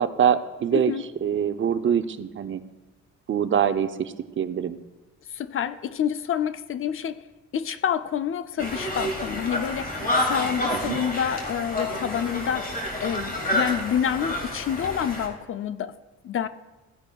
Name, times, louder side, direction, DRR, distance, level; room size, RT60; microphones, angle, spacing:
voice 1, 0.0-0.9 1.2-2.6 3.3-4.8 10.8-11.0, right 8 dB, 40° right, 10 dB, 0.5 m, -24 dB
voice 2, 0.7-1.0 5.3-7.3 7.5-16.0 16.2-16.5, left 8 dB, 45° left, 12 dB, 0.5 m, -28 dB
Conversation, 8.6-15.3, left 1 dB, 30° left, 2.1 m, -29 dB
15.5 x 9.6 x 2.3 m, 1.1 s
cardioid pair, 90°, 30 cm